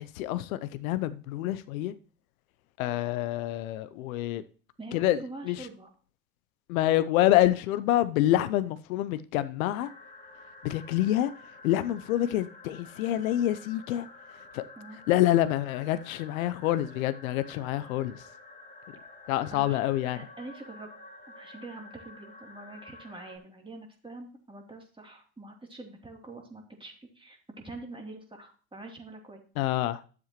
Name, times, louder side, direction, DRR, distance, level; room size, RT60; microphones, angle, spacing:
voice 1, 0.0-1.9 2.8-4.4 4.9-5.2 5.4-5.7 6.7-9.9 10.6-11.3 11.6-14.1 14.5-14.6 15.1-18.2 19.3-20.2 29.6-30.0, left 14 dB, 80° left, 0.7 m, -27 dB
voice 2, 4.8-5.9 14.8-15.0 19.5-19.8 20.1-20.9 21.3-29.4, right 2 dB, 10° right, 3.1 m, -45 dB
sound 1, 9.8-23.4, left 3 dB, 20° left, 2.6 m, -50 dB
12.0 x 7.5 x 3.1 m
hypercardioid pair, 80°, 41 cm